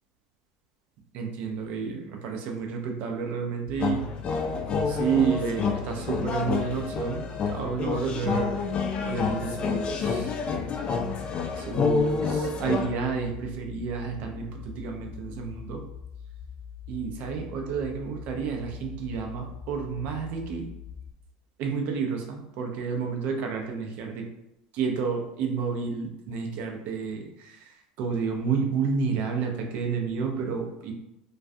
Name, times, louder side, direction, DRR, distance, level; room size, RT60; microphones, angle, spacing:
voice 1, 1.1-4.0 4.9-8.6 9.0-10.3 11.6-15.8 16.9-20.7 21.6-24.2 24.8-30.9, right 5 dB, 60° right, 2 dB, 0.5 m, -30 dB
sound 1, 3.7-21.1, left 7 dB, 10° left, 0.8 m, -43 dB
sound 2, 3.8-12.9, left 4 dB, 40° left, 0.4 m, -28 dB
2.3 x 2.2 x 2.6 m, 0.87 s
hypercardioid pair, 90°, 3 cm